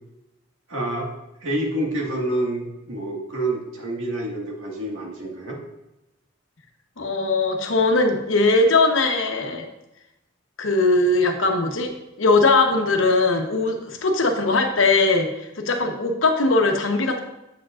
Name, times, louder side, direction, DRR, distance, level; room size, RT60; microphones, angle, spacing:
voice 1, 0.7-1.1 1.4-5.6, right 1 dB, 85° right, -1 dB, 1.8 m, -27 dB
voice 2, 7.0-9.7 10.6-11.9 12.2-17.2, left 3 dB, 75° left, 4 dB, 0.9 m, -20 dB
7.9 x 7.3 x 2.5 m, 0.93 s
head